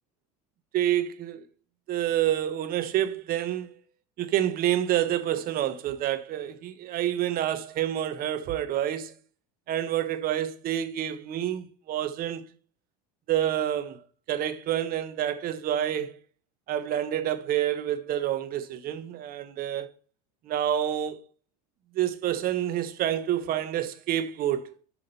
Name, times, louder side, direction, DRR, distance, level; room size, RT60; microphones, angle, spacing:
voice 1, 0.7-1.4 1.9-3.8 4.2-9.1 9.7-12.5 13.3-14.0 14.3-16.1 16.7-19.9 20.4-21.2 21.9-24.7, right 11 dB, 50° right, 1.1 m, -28 dB
7.0 x 5.0 x 5.6 m
supercardioid pair, 95°, 19 cm